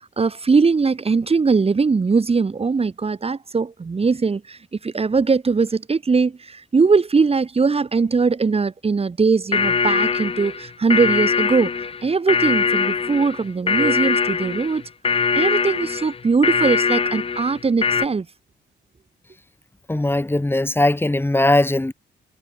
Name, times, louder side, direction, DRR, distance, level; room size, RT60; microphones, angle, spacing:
voice 1, 0.2-11.7 12.0-14.8 15.3-18.3, right 4 dB, 30° right, 2.8 m, -20 dB
Industrial Alarm, 9.5-18.1, left 5 dB, 30° left, 0.8 m, -22 dB
voice 2, 19.9-21.9, left 1 dB, 10° left, 4.6 m, -19 dB
cardioid pair, 90°, 20 cm